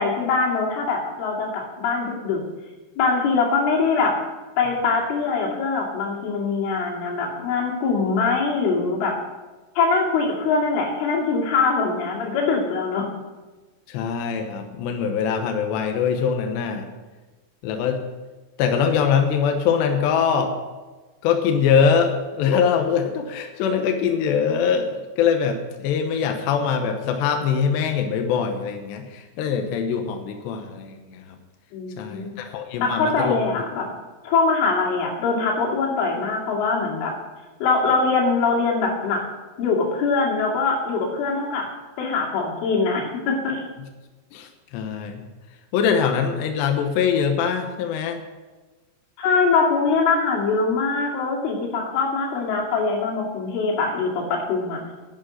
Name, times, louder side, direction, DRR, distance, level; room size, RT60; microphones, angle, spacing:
voice 1, 0.0-2.4 3.0-4.1 4.6-9.1 9.8-13.1 31.7-32.3 32.8-33.9 34.2-37.1 37.6-39.2 39.6-41.7 42.0-43.6 49.2-54.9, left 4 dB, 90° left, -2 dB, 5.1 m, -22 dB
voice 2, 13.9-16.9 17.6-18.0 18.6-20.5 21.2-31.4 32.0-33.4 44.3-45.3 45.7-48.2, left 7 dB, 75° left, 4 dB, 3.1 m, -23 dB
11.0 x 10.0 x 6.4 m, 1.2 s
omnidirectional pair, 5.4 m